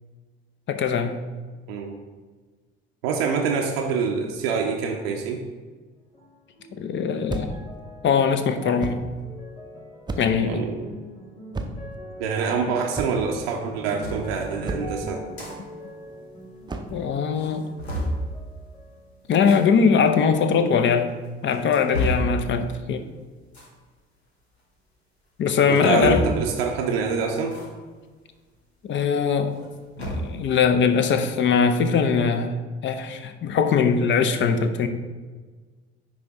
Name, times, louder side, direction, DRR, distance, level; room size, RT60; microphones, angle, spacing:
voice 1, 0.7-1.2 6.8-7.6 8.0-9.0 10.2-10.6 16.9-17.7 19.3-21.1 21.4-23.0 25.4-26.3 28.9-29.6 30.0-32.5 32.8-34.9, left 6 dB, 40° left, 9 dB, 0.6 m, -21 dB
voice 2, 1.7-2.0 3.0-5.4 10.4-10.9 12.2-15.3 25.7-27.6, right 5 dB, 70° right, 2 dB, 0.7 m, -26 dB
sound 1, 6.1-19.6 19.9-20.9 21.6-21.7, equal, 15° left, 1.5 m, -43 dB
sound 2, 7.3-7.7 8.8-9.1 10.1-10.5 11.5-12.0 12.9-13.4 14.7-15.0 16.7-17.0, right 2 dB, 15° right, 0.6 m, -32 dB
sound 3, 14.0-14.2 15.1-15.5 15.9-16.0 16.2-16.3 16.9-17.0 17.4-18.2 19.3-19.6 20.4-20.5 21.2-22.3 23.5-23.8 25.5-26.5 27.5-27.7 28.0-28.1 29.4-30.4, equal, 85° left, 1.0 m, -30 dB
10.0 x 3.4 x 3.6 m, 1.4 s
figure-of-eight pair, 55°, 31 cm